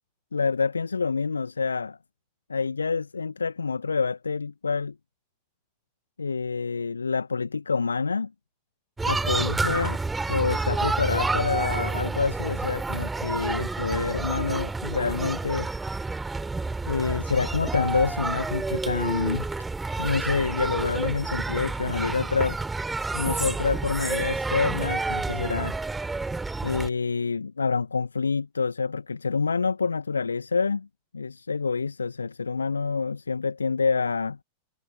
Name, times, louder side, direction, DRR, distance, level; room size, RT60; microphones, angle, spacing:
voice 1, 0.3-2.0 2.5-4.9 6.2-8.3 9.1-10.0 10.3-15.7 16.9-19.5 20.0-22.6 23.1-25.7 26.6-30.9 31.1-34.4, left 4 dB, 75° left, 1.3 m, -27 dB
sound 1, 9.0-26.9, right 3 dB, 10° right, 3.3 m, -29 dB
figure-of-eight pair, 90°, 0 cm